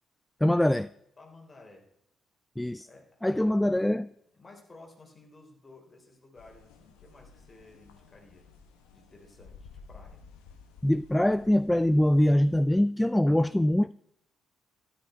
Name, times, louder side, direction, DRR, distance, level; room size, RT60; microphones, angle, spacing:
voice 1, 0.4-0.9 2.6-2.9 3.2-4.1 10.8-13.9, left 1 dB, 10° left, 0.3 m, -23 dB
voice 2, 1.2-1.9 2.8-3.9 4.3-8.5 8.9-10.2, left 2 dB, 30° left, 3.8 m, -54 dB
sound 1, 6.4-12.7, left 5 dB, 75° left, 1.2 m, -53 dB
13.0 x 11.0 x 4.4 m
figure-of-eight pair, 40°, 0 cm